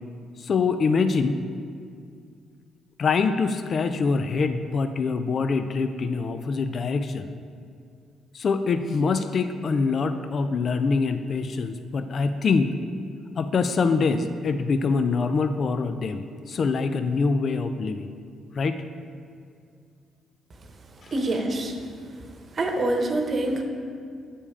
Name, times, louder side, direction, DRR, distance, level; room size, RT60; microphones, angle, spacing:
voice 1, 0.4-1.4 3.0-7.3 8.3-12.7 13.4-18.1 18.5-18.8 21.0-21.1, left 4 dB, 50° left, 9 dB, 0.4 m, -24 dB
voice 2, 21.1-21.8 22.5-23.6, right 2 dB, 40° right, 3 dB, 1.0 m, -25 dB
8.4 x 5.3 x 4.8 m, 2.3 s
cardioid pair, 90°, 0 cm